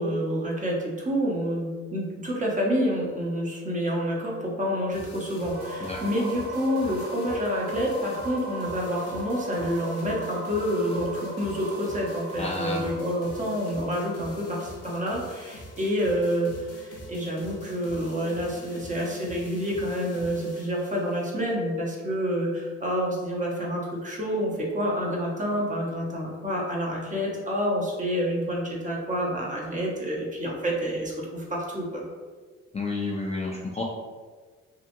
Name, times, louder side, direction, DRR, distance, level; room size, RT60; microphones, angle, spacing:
voice 1, 0.0-32.0, equal, 25° right, -3 dB, 0.7 m, -28 dB
sound 1, 4.9-21.5, left 1 dB, 55° left, 0.7 m, -46 dB
sound 2, 5.5-17.3, right 1 dB, 90° right, 1.0 m, -38 dB
voice 2, 5.8-6.3 12.4-12.9 32.7-33.9, left 2 dB, 20° left, -3 dB, 0.4 m, -31 dB
2.8 x 2.4 x 2.5 m, 1.5 s
cardioid pair, 90°, 30 cm